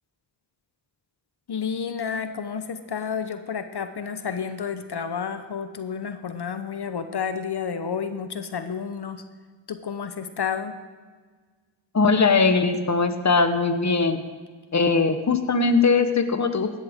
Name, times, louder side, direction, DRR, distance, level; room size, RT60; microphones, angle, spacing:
voice 1, 1.5-9.2 9.7-10.7, left 6 dB, 55° left, 9 dB, 0.9 m, -30 dB
voice 2, 11.9-14.2 14.7-16.7, left 4 dB, 35° left, 9 dB, 1.1 m, -20 dB
15.0 x 11.0 x 3.6 m, 1.5 s
cardioid pair, 60°, 47 cm